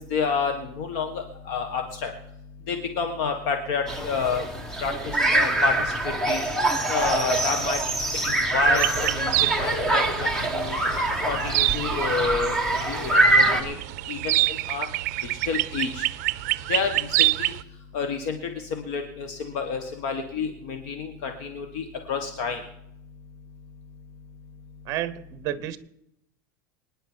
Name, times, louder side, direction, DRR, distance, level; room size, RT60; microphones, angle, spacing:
voice 1, 0.0-2.1 2.7-4.4 4.8-6.4 6.9-7.8 8.2-10.0 10.5-10.8 11.3-13.7 14.1-14.9 15.4-16.1 16.7-17.5 17.9-18.4 18.7-22.6, left 5 dB, 55° left, 1.5 m, -29 dB
sound 1, 3.9-13.6, right 2 dB, 5° left, 1.2 m, -24 dB
sound 2, 8.6-17.6, right 19 dB, 65° right, 0.5 m, -27 dB
voice 2, 24.8-25.8, right 12 dB, 35° right, 0.9 m, -30 dB
25.5 x 10.0 x 4.5 m
supercardioid pair, 170°, 10 cm